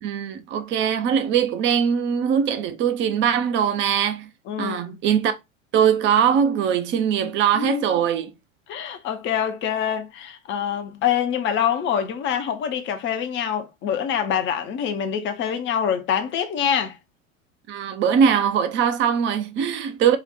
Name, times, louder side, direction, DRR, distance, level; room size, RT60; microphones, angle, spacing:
voice 1, 0.0-4.3 4.6-5.4 5.7-8.3 17.7-20.2, right 8 dB, 30° right, 0.7 m, -21 dB
voice 2, 4.5-4.8 7.5-7.8 8.7-17.0, left 8 dB, 30° left, 0.8 m, -25 dB
4.9 x 2.4 x 4.1 m
figure-of-eight pair, 85°, 40 cm